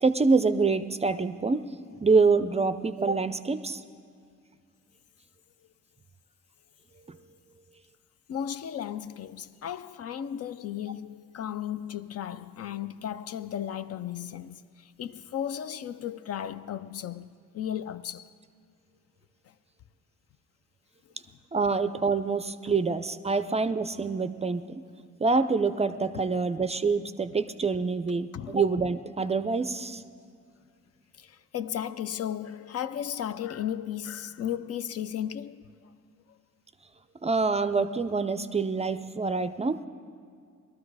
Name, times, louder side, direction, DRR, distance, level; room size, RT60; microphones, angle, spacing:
voice 1, 0.0-1.7 2.0-3.8 7.1-7.2 21.5-24.8 25.2-30.0 37.2-39.8, right 4 dB, 20° right, 0.4 m, -26 dB
voice 2, 8.3-18.3 22.7-22.8 28.3-28.6 31.2-35.7, left 10 dB, 55° left, 0.5 m, -35 dB
19.0 x 13.0 x 4.7 m
cardioid pair, 90°, 30 cm